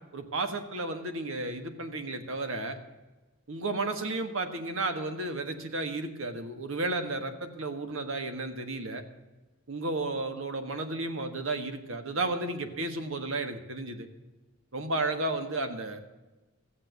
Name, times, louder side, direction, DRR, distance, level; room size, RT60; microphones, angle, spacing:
voice 1, 0.1-2.8 3.5-9.0 9.7-14.1 14.7-16.0, right 2 dB, 70° right, 7 dB, 1.6 m, -33 dB
14.5 x 7.8 x 8.1 m, 1.2 s
head